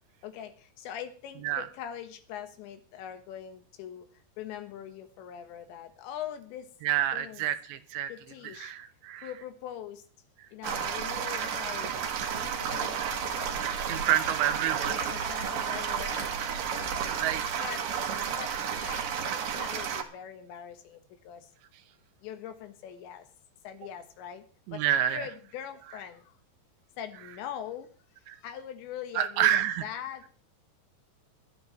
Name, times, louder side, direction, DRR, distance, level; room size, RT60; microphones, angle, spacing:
voice 1, 0.2-4.1 4.4-6.7 7.1-7.5 8.1-8.7 9.2-10.0 10.5-13.6 14.9-17.3 17.6-18.5 18.8-21.5 22.2-23.3 23.6-24.5 24.7-26.3 27.0-27.9 28.4-30.3, left 9 dB, 85° left, 8 dB, 3.7 m, -42 dB
voice 2, 6.8-8.1 8.4-9.3 13.9-15.1 17.1-17.4 24.7-25.3 28.3-28.4 29.2-29.9, right 11 dB, 85° right, 10 dB, 3.2 m, -28 dB
sound 1, 10.6-20.0, right 7 dB, 60° right, 2.7 m, -32 dB
21.0 x 12.5 x 3.2 m, 0.39 s
omnidirectional pair, 5.1 m